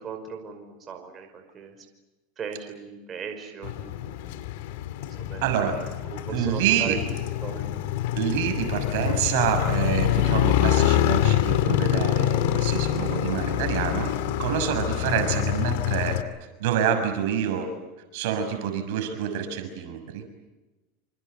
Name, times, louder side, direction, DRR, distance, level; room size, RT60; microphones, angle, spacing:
voice 1, 0.0-1.9 2.4-4.4 5.0-7.0 7.4-7.7 14.8-14.9, right 6 dB, 30° right, 4 dB, 5.5 m, -39 dB
Motorcycle, 3.6-16.2, left 12 dB, 70° left, 2.4 m, -25 dB
voice 2, 5.4-5.8 6.3-7.0 8.1-16.2 16.6-17.7 18.1-20.2, right 8 dB, 70° right, 7 dB, 6.4 m, -27 dB
27.0 x 27.0 x 8.1 m, 1.1 s
supercardioid pair, 120°, 0 cm